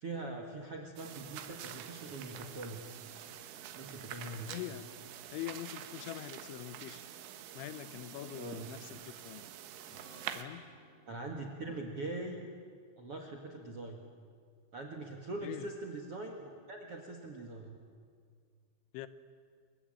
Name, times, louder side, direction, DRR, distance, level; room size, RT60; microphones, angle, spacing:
voice 1, 0.0-3.0 3.8-4.6 8.3-8.7 11.1-12.5 13.0-14.0 14.7-17.8, right 2 dB, 55° right, 3 dB, 1.7 m, -42 dB
sound 1, 1.0-10.4, right 10 dB, 85° right, 3.8 m, -47 dB
voice 2, 4.5-4.9 5.3-7.0 7.5-9.5 10.3-10.6 15.4-15.7 18.9-19.1, left 13 dB, 85° left, 13 dB, 3.2 m, -43 dB
Acoustic guitar / Strum, 9.9-13.5, right 1 dB, 35° left, 5.8 m, -61 dB
25.5 x 22.5 x 8.9 m, 2.1 s
omnidirectional pair, 5.4 m